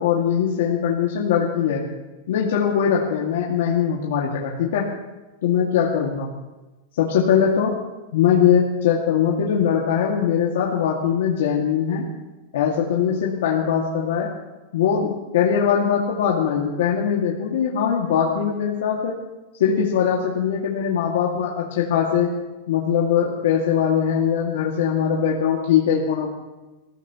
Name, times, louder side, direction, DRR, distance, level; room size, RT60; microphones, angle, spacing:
voice 1, 0.0-1.8 2.3-4.9 5.4-6.3 7.0-7.7 8.1-12.1 12.5-14.3 14.7-19.2 19.6-22.3 22.7-26.3, left 8 dB, 80° left, -3 dB, 2.2 m, -21 dB
23.0 x 15.5 x 3.1 m, 1.1 s
supercardioid pair, 165°, 0 cm